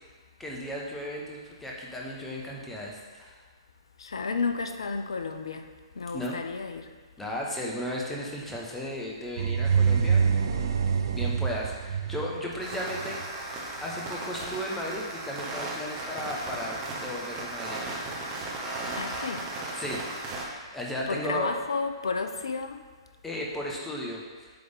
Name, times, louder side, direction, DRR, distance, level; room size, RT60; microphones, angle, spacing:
voice 1, 0.4-3.4 6.1-6.4 7.2-10.2 10.5-10.7 11.1-13.2 13.8-17.8 19.7-20.4 20.7-21.5 23.2-24.5, equal, 5° left, -3 dB, 0.9 m, -35 dB
voice 2, 4.0-5.7 6.0-6.9 19.0-19.5 21.1-22.8, left 4 dB, 70° left, 7 dB, 0.4 m, -32 dB
sound 1, 9.4-13.3, right 6 dB, 55° right, 0.4 m, -26 dB
sound 2, 12.6-20.5, right 2 dB, 25° right, 1.0 m, -36 dB
7.8 x 3.4 x 3.5 m, 1.4 s
figure-of-eight pair, 115°, 3 cm